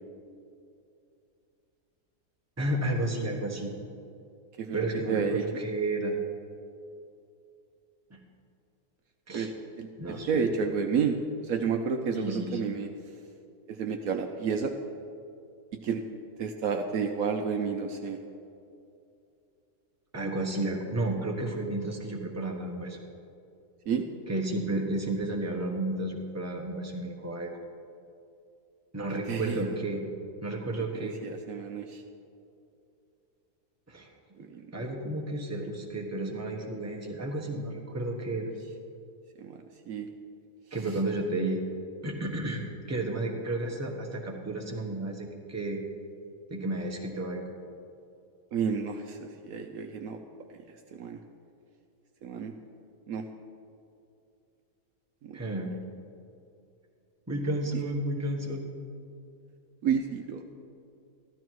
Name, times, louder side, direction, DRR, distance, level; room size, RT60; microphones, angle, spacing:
voice 1, 2.6-3.7 4.7-6.2 8.1-8.2 9.3-9.5 10.0-10.5 12.1-12.7 20.1-23.0 24.3-27.5 28.9-30.0 30.4-31.2 33.9-34.1 34.7-38.5 40.7-41.6 42.0-45.8 46.5-47.4 55.3-55.7 57.3-58.7, right 2 dB, 10° right, 0 dB, 1.2 m, -32 dB
voice 2, 4.6-5.4 9.3-9.5 9.8-12.9 13.7-14.8 15.8-16.0 16.4-18.2 23.9-24.1 29.3-29.6 30.9-32.0 34.4-34.7 39.4-39.6 39.9-40.1 48.5-50.2 50.5-50.6 50.9-51.2 52.2-52.5 53.1-53.2 55.2-55.4 59.8-60.4, right 6 dB, 70° right, 5 dB, 1.1 m, -31 dB
14.0 x 12.0 x 4.7 m, 2.6 s
omnidirectional pair, 1.7 m